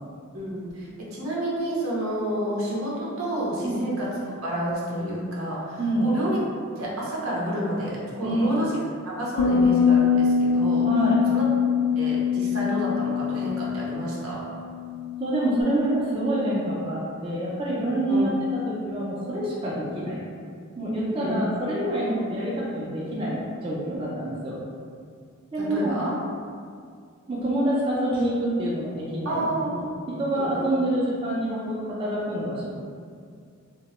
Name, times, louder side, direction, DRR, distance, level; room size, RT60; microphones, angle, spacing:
voice 1, 0.3-6.4 6.8-8.7 9.0-10.9 11.3-11.4 12.0-14.5 18.1-18.4 21.2-21.4 25.6-26.1 29.2-29.8 30.3-30.7, right 1 dB, 80° right, -6 dB, 0.7 m, -30 dB
voice 2, 5.8-6.2 8.2-8.6 10.8-11.2 15.2-20.2 20.8-24.6 25.5-25.9 27.3-32.7, right 1 dB, 25° right, -7 dB, 0.4 m, -27 dB
sound 1, 9.4-15.6, left 6 dB, 85° left, 0.3 m, -23 dB
2.8 x 2.1 x 3.0 m, 2.2 s
head